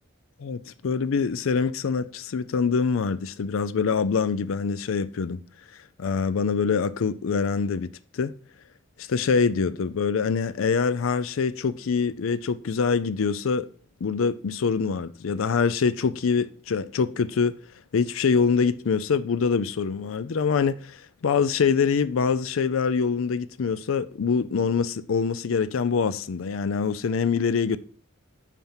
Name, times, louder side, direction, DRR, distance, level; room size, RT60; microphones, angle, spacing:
voice 1, 0.4-5.4 6.0-7.9 8.1-8.3 9.0-13.7 14.0-17.6 17.9-27.8, left 5 dB, 90° left, 0.5 m, -24 dB
9.0 x 4.4 x 5.6 m
head